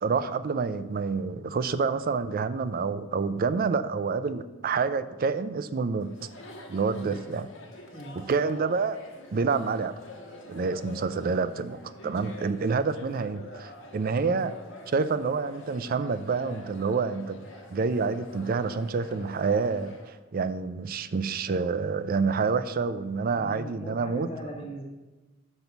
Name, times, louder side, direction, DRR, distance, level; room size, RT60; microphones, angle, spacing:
voice 1, 0.0-6.1 6.7-7.5 8.2-9.0 9.3-9.9 10.5-14.5 14.9-24.3, right 4 dB, 45° right, 14 dB, 0.4 m, -28 dB
Chatter, 6.0-20.1, left 1 dB, 75° left, 1.3 m, -46 dB
voice 2, 7.9-8.3 14.2-14.5 23.2-24.9, equal, 30° left, 0 dB, 1.3 m, -41 dB
6.1 x 5.3 x 6.9 m, 1.2 s
head